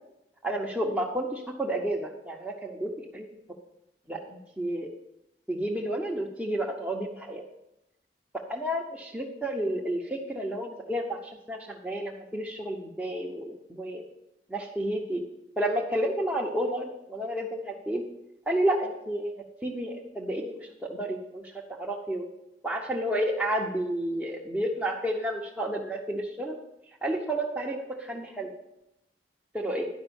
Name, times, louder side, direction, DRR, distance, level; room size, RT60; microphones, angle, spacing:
voice 1, 0.4-3.3 4.1-4.9 5.5-7.4 8.5-14.0 14.5-15.2 15.6-18.0 18.5-19.3 19.6-22.3 22.6-26.6 27.0-28.5 29.5-29.9, right 1 dB, 5° right, -4 dB, 1.0 m, -31 dB
11.5 x 5.4 x 7.0 m, 0.86 s
head